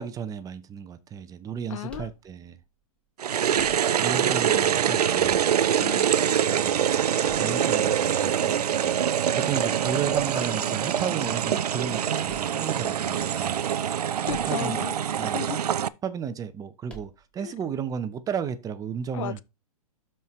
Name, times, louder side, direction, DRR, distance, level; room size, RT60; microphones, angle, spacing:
voice 1, 0.0-2.6 4.0-5.4 6.4-6.9 7.4-9.1 9.4-14.0 14.5-14.9 15.2-15.4 16.0-19.4, right 7 dB, 20° right, 0.7 m, -33 dB
voice 2, 1.7-2.1 5.8-6.1 14.0-15.0 15.2-15.6 17.4-17.5 19.1-19.4, left 13 dB, 55° left, 0.6 m, -35 dB
sound 1, 1.9-2.7 3.5-4.2 5.2-5.9 7.2-8.0 10.1-10.7 12.2-13.1 14.2-14.8 15.1-15.2 16.9-17.5, right 1 dB, 5° left, 1.6 m, -48 dB
sound 2, 3.2-15.9, right 9 dB, 90° right, 0.5 m, -24 dB
12.0 x 4.6 x 3.2 m
hypercardioid pair, 125°, 19 cm